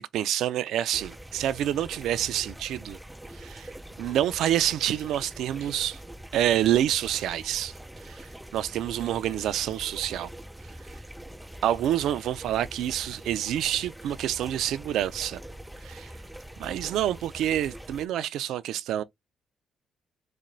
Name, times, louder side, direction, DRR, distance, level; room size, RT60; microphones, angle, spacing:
voice 1, 0.0-3.0 3.3-3.7 4.0-6.0 6.3-7.7 8.0-8.3 8.5-10.3 11.6-15.4 15.8-16.1 16.6-19.0, right 11 dB, 80° right, 0.4 m, -27 dB
sound 1, 0.9-18.1, right 1 dB, 5° right, 0.3 m, -44 dB
4.2 x 2.2 x 3.8 m
cardioid pair, 90°, 0 cm